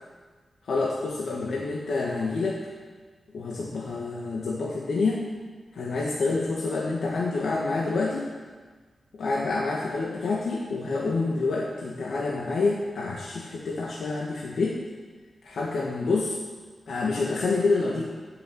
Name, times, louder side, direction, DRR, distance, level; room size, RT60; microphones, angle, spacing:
voice 1, 0.7-2.6 3.3-5.2 5.8-8.3 9.2-14.8 15.4-16.4 16.9-18.0, left 3 dB, 70° left, -3 dB, 1.7 m, -27 dB
14.5 x 6.8 x 8.0 m, 1.4 s
wide cardioid pair, 175°, 0 cm